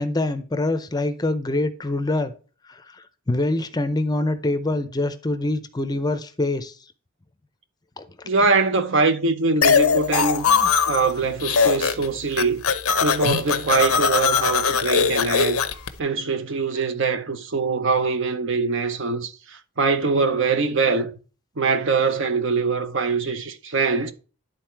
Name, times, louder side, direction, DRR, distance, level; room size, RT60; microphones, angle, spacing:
voice 1, 0.0-2.3 2.7-6.8 8.0-8.1 10.5-10.7, left 2 dB, 20° left, 0.5 m, -25 dB
voice 2, 8.2-10.5 10.9-12.6 13.0-15.6 16.0-21.1 21.6-24.1, right 4 dB, 60° right, 0.8 m, -23 dB
sound 1, 9.6-11.1 11.4-12.1 12.3-15.9, left 6 dB, 85° left, 0.7 m, -20 dB
11.0 x 4.0 x 4.5 m
head